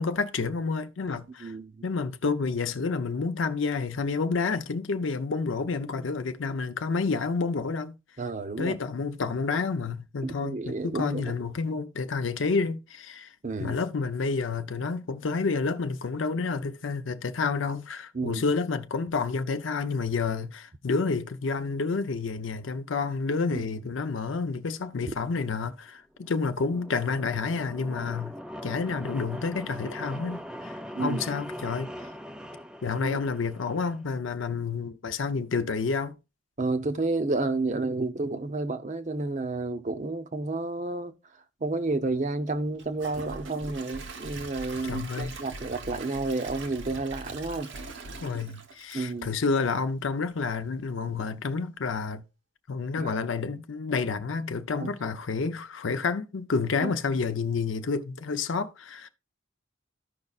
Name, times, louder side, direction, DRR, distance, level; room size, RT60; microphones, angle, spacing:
voice 1, 0.0-1.5 1.8-8.0 8.6-13.3 13.6-28.4 28.6-31.9 32.8-36.1 44.8-45.3 48.2-52.2 52.7-59.1, left 4 dB, 75° left, 0.6 m, -29 dB
voice 2, 1.4-1.8 8.2-8.8 10.2-11.4 13.4-13.8 18.1-18.4 23.5-23.6 31.0-31.2 33.0-33.2 36.6-41.1 41.6-47.7 48.9-49.3 53.0-53.1 54.7-54.9 56.8-56.9, right 3 dB, 40° right, 0.7 m, -31 dB
sound 1, 26.1-34.0, equal, 5° right, 0.4 m, -41 dB
Gurgling / Toilet flush / Trickle dribble, 42.7-49.8 50.2-50.3 50.8-50.9, right 4 dB, 65° right, 0.9 m, -44 dB
sound 2, 43.1-48.2, equal, 85° right, 0.8 m, -44 dB
14.0 x 5.3 x 2.4 m
head